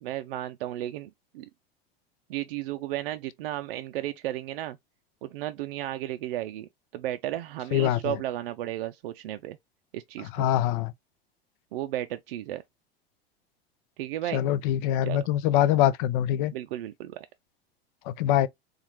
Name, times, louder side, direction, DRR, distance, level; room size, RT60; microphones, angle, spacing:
voice 1, 0.0-1.5 2.3-4.8 5.2-9.6 9.9-10.5 11.7-12.6 14.0-14.4 15.0-15.2 16.5-17.3, right 14 dB, 60° right, 0.4 m, -34 dB
voice 2, 7.7-8.1 10.4-10.9 14.3-16.5 18.1-18.5, left 12 dB, 50° left, 0.5 m, -24 dB
4.1 x 2.4 x 3.0 m
figure-of-eight pair, 85°, 31 cm